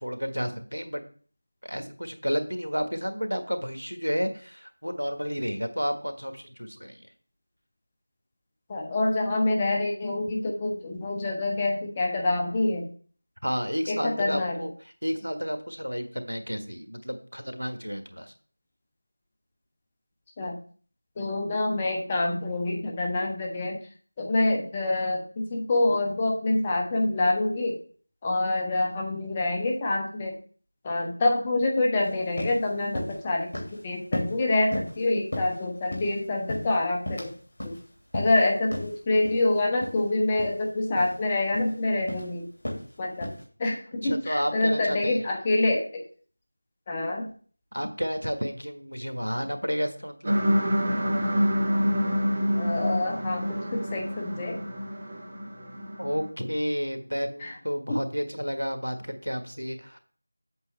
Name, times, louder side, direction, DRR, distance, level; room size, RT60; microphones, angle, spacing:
voice 1, 0.0-1.0 1.6-7.0 13.4-14.7 15.0-18.3 44.0-45.2 47.7-50.4 56.0-60.0, equal, 90° right, 7 dB, 1.5 m, -31 dB
voice 2, 8.7-12.9 13.9-14.6 20.4-20.6 21.2-23.8 24.2-27.8 28.2-30.4 30.8-37.3 37.6-37.8 38.1-42.5 43.0-43.3 43.6-46.0 46.9-47.3 52.5-54.6 57.4-57.6 57.9-58.0, left 2 dB, 15° left, 0 dB, 0.8 m, -26 dB
sound 1, 32.0-32.1 32.4-32.6 32.9-33.2 33.5-33.8 34.1-34.4 34.7-35.0 35.3-36.1 36.5-37.3 37.6-37.8 38.1-38.4 38.7-38.9 39.2-39.4 39.8-40.0 40.3-40.5 41.0-41.2 41.5-41.8 42.1-42.3 42.6-42.9 43.2-43.4, left 1 dB, 45° left, 2.7 m, -33 dB
sound 2, 50.2-56.2, equal, 25° right, 1.3 m, -27 dB
8.3 x 7.9 x 3.3 m, 0.44 s
figure-of-eight pair, 170°, 0 cm